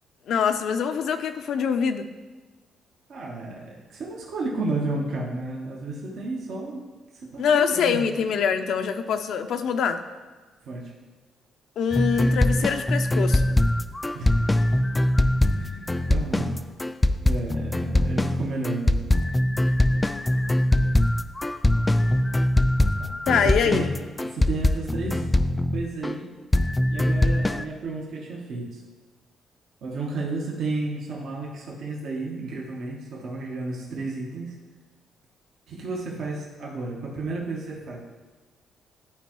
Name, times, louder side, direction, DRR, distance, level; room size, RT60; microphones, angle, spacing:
voice 1, 0.3-2.1 7.4-10.0 11.8-13.5 23.3-24.1, left 6 dB, 70° left, 8 dB, 0.5 m, -24 dB
voice 2, 3.1-6.9 7.2-8.1 10.7-10.9 14.1-14.4 15.5-16.5 17.2-19.1 23.0-25.3 25.7-26.3 26.9-28.8 29.8-34.6 35.7-38.0, right 3 dB, 70° right, -2 dB, 1.2 m, -32 dB
sound 1, 11.9-26.1 26.5-27.6, left 1 dB, 15° left, 0.3 m, -22 dB
11.5 x 4.4 x 3.1 m, 1.3 s
cardioid pair, 90°, 0 cm